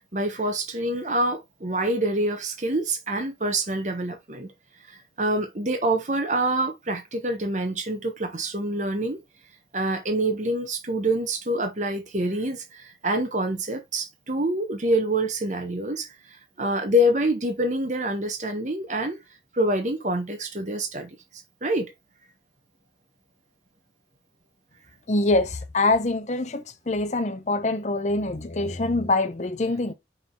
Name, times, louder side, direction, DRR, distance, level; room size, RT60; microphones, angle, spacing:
voice 1, 0.1-4.5 5.2-9.2 9.7-16.1 16.6-19.2 19.5-21.1 21.6-21.9, right 1 dB, 40° right, 1.1 m, -26 dB
voice 2, 25.1-29.9, left 2 dB, 40° left, 0.7 m, -24 dB
5.7 x 3.8 x 4.5 m
head